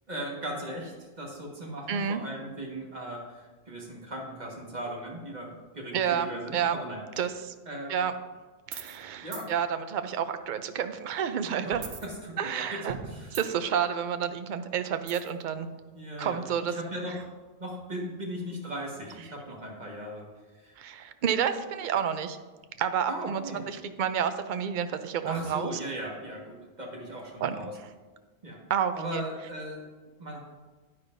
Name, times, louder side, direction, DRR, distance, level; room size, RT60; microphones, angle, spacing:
voice 1, 0.1-7.0 7.7-8.0 9.2-9.5 11.6-13.4 15.9-17.3 17.6-20.2 20.6-20.7 23.1-23.6 25.2-27.7 28.4-28.6 28.9-29.8 30.2-30.4, right 1 dB, 40° right, -1 dB, 1.7 m, -38 dB
voice 2, 1.9-2.2 5.9-6.8 7.2-7.5 7.9-8.1 8.7-11.8 12.4-12.9 13.3-15.7 16.2-16.8 20.8-22.4 22.8-25.7 27.4-27.6 28.7-29.2, right 8 dB, 55° right, 9 dB, 0.6 m, -30 dB
sound 1, 8.7-9.0 9.3-9.5 11.7-12.6 12.9-13.7 15.1-15.4, right 6 dB, 90° right, 1.2 m, -41 dB
9.8 x 9.6 x 2.6 m, 1.3 s
omnidirectional pair, 1.2 m